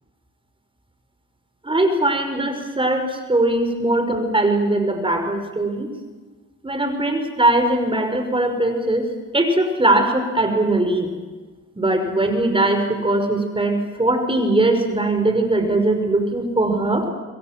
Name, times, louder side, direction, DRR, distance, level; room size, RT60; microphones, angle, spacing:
voice 1, 1.6-5.9 6.6-9.1 9.3-11.1 11.8-17.1, right 2 dB, 15° right, 6 dB, 5.8 m, -20 dB
28.5 x 22.0 x 7.7 m, 1.3 s
cardioid pair, 90°, 30 cm